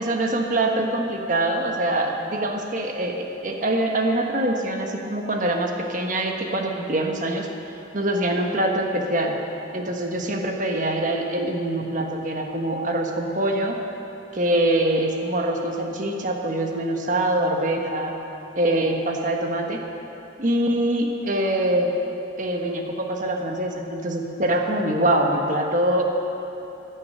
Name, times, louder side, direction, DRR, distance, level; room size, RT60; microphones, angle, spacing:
voice 1, 0.0-7.5 7.9-9.3 9.7-13.8 14.3-18.1 18.5-19.8 20.4-21.9 22.4-26.0, right 1 dB, 40° right, 2 dB, 1.4 m, -24 dB
16.5 x 9.7 x 6.7 m, 3.0 s
head